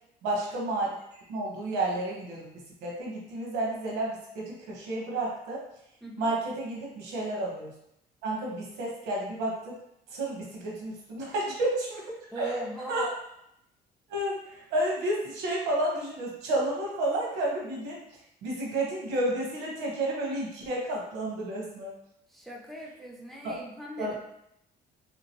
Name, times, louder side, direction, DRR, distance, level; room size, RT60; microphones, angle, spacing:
voice 1, 0.2-0.9 1.3-2.5 2.8-5.6 6.2-7.7 8.2-9.7 10.1-12.5 12.9-13.1 14.1-18.0 18.4-21.9 23.4-23.6 24.0-24.1, right 1 dB, 85° right, -2 dB, 1.1 m, -31 dB
voice 2, 6.0-6.3 12.3-13.2 22.3-24.3, right 1 dB, ahead, -2 dB, 0.5 m, -39 dB
3.1 x 2.9 x 2.9 m, 0.79 s
cardioid pair, 110°, 17 cm